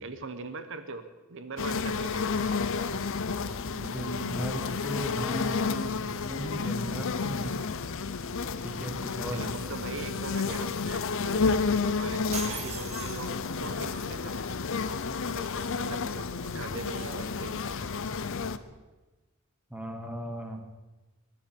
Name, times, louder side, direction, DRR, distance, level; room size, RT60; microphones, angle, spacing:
voice 1, 0.0-2.6 9.3-14.6 15.2-17.7, right 3 dB, 65° right, 10 dB, 1.0 m, -41 dB
sound 1, 1.6-18.6, left 4 dB, 65° left, 0.7 m, -31 dB
voice 2, 3.7-7.6 8.6-9.5 19.7-20.6, right 1 dB, 5° right, 4 dB, 1.7 m, -37 dB
sound 2, 12.3-13.8, right 5 dB, 30° right, 1.5 m, -39 dB
21.5 x 10.5 x 5.4 m, 1.2 s
head